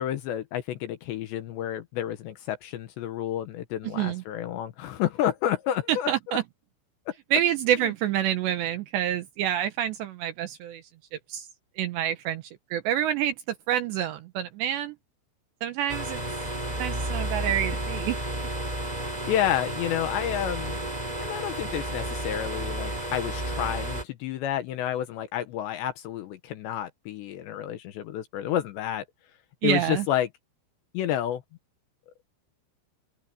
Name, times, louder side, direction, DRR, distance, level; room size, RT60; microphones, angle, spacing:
voice 1, 0.0-6.4 7.1-7.2 19.0-20.8 21.2-29.0 29.6-30.3 30.9-31.4, left 11 dB, 70° left, 2.9 m, -30 dB
voice 2, 3.8-4.2 5.9-6.4 7.3-10.8 11.3-11.5 11.8-12.4 12.7-13.4 13.7-14.9 15.6-16.2 16.8-18.5 29.6-30.1, right 11 dB, 75° right, 2.7 m, -27 dB
sound 1, 15.9-24.0, right 1 dB, 10° right, 3.1 m, -32 dB
open air
omnidirectional pair, 5.9 m